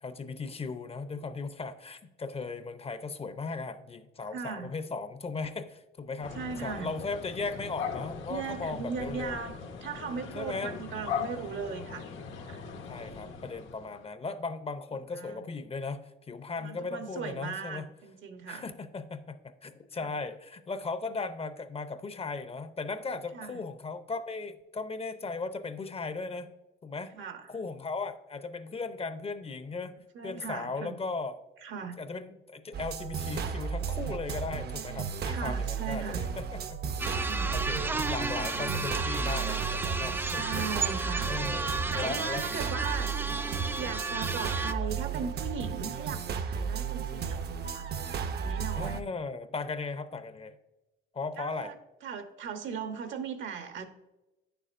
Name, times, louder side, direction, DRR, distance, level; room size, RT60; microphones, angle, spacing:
voice 1, 0.0-9.4 10.3-10.8 12.9-17.9 18.5-26.5 26.8-27.1 27.5-30.0 30.2-31.3 32.0-36.8 37.1-40.7 41.2-42.5 48.8-50.6 51.1-51.7, left 4 dB, 30° left, 11 dB, 0.6 m, -37 dB
voice 2, 4.3-4.7 6.2-6.9 8.3-12.6 15.1-15.4 16.6-18.7 20.0-20.1 23.3-23.6 27.2-27.5 30.1-30.9 31.6-32.0 35.3-36.2 37.1-37.5 39.8-39.9 40.2-47.9 48.2-49.0 51.4-51.8 52.0-53.9, right 6 dB, 75° right, 7 dB, 1.0 m, -38 dB
sound 1, 6.2-14.0, left 6 dB, 80° left, 1.1 m, -40 dB
sound 2, 32.7-49.0, right 6 dB, 55° right, 0.6 m, -34 dB
sound 3, 37.0-44.7, right 3 dB, 10° right, 0.3 m, -33 dB
9.5 x 6.8 x 2.5 m, 0.99 s
cardioid pair, 90°, 20 cm